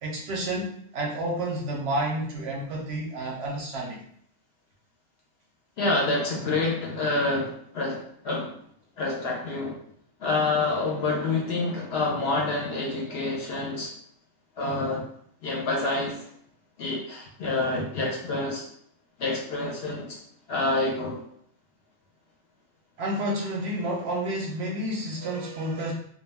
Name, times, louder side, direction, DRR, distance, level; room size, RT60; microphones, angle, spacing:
voice 1, 0.0-4.0 23.0-25.9, right 1 dB, 65° right, -2 dB, 0.7 m, -30 dB
voice 2, 5.8-8.5 9.0-9.8 10.2-13.9 14.6-15.1 15.4-16.3 16.8-18.6 19.2-20.2 20.5-21.2, left 2 dB, 65° left, -1 dB, 0.7 m, -27 dB
2.2 x 2.2 x 3.2 m, 0.66 s
omnidirectional pair, 1.3 m